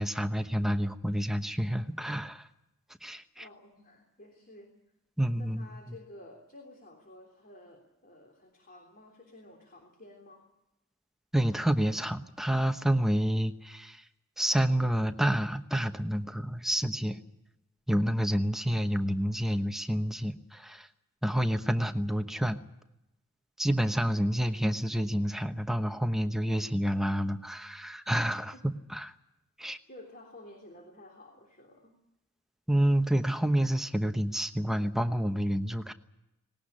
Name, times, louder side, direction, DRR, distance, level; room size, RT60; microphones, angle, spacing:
voice 1, 0.0-2.4 3.0-3.4 5.2-5.7 11.3-14.0 14.4-17.2 17.9-20.9 21.2-22.6 23.6-29.1 29.6-29.8 32.7-35.9, equal, ahead, 7 dB, 1.0 m, -28 dB
voice 2, 3.4-4.7 5.4-10.5 28.5-28.7 29.9-32.0, left 1 dB, 40° left, 3 dB, 3.4 m, -52 dB
19.5 x 18.5 x 10.0 m, 0.91 s
head